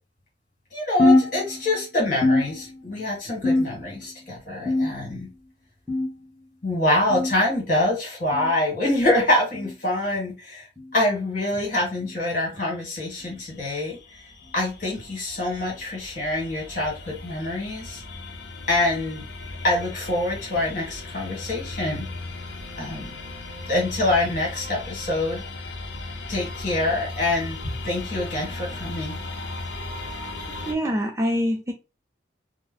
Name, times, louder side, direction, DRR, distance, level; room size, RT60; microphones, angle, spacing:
voice 1, 0.7-5.3 6.6-10.7 10.9-14.0 14.5-18.0 18.7-19.2 19.6-22.1 22.8-23.1 23.7-25.4 26.3-29.2, left 1 dB, 45° left, 1.7 m, -25 dB
sound 1, 1.0-1.8 2.2-3.0 3.4-4.0 4.7-5.3 5.9-6.3 7.1-7.3 8.3-8.5 9.5-9.7 10.8-10.9 12.0-12.2 13.2-13.4 14.4-14.5 15.6-15.7, left 2 dB, ahead, 1.0 m, -23 dB
sound 2, 13.0-30.7, left 2 dB, 65° left, 0.7 m, -37 dB
voice 2, 30.7-31.7, equal, 15° right, 0.4 m, -24 dB
3.0 x 2.0 x 3.7 m
head